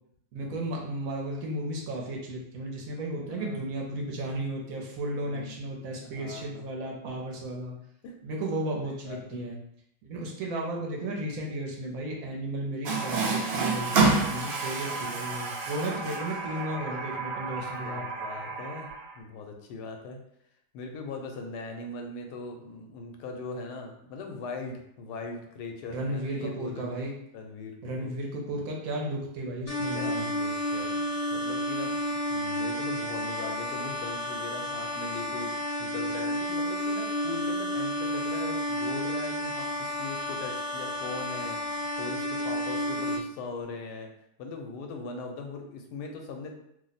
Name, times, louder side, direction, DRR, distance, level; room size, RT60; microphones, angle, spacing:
voice 1, 0.3-7.7 8.2-9.6 10.0-18.1 25.9-27.1 27.8-30.3, right 1 dB, 70° right, -1 dB, 0.9 m, -34 dB
voice 2, 3.3-3.6 5.1-5.6 5.8-6.7 7.4-7.5 8.0-8.2 8.8-9.4 14.9-15.0 17.8-18.9 19.2-20.2 20.7-27.0 27.3-28.1 29.9-44.1 44.4-46.5, left 3 dB, 90° left, 3 dB, 1.2 m, -40 dB
Water tap faucet, 12.9-19.2, right 4 dB, 85° right, 0.5 m, -29 dB
sound 1, 29.7-43.2, equal, 55° left, 0.8 m, -31 dB
2.7 x 2.0 x 3.9 m, 0.75 s
omnidirectional pair, 1.7 m